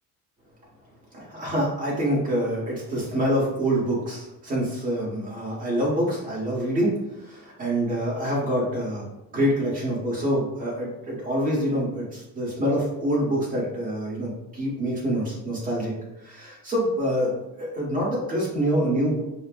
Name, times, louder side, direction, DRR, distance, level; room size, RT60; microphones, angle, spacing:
voice 1, 1.1-9.1 9.3-15.9 16.2-19.2, equal, 25° right, -5 dB, 1.4 m, -26 dB
5.5 x 2.3 x 2.5 m, 0.95 s
cardioid pair, 165°, 34 cm